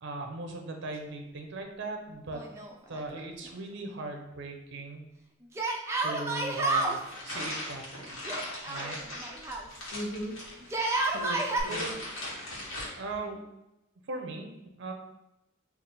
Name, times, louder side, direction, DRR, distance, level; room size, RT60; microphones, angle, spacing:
voice 1, 0.0-2.5 2.9-5.1 6.0-8.2 8.7-9.0 11.6-12.1 13.0-13.4 14.1-14.5 14.8-14.9, right 2 dB, 60° right, 4 dB, 0.6 m, -38 dB
Yell, 2.3-3.2 3.4-3.5 5.6-7.0 8.3-9.7 10.6-11.6, right 2 dB, 15° right, 0.4 m, -30 dB
sound 1, 6.7-12.9, left 1 dB, 90° left, 1.4 m, -39 dB
voice 2, 9.9-11.9 12.4-13.0, equal, 65° left, -1 dB, 0.8 m, -40 dB
3.5 x 2.4 x 4.0 m, 0.92 s
head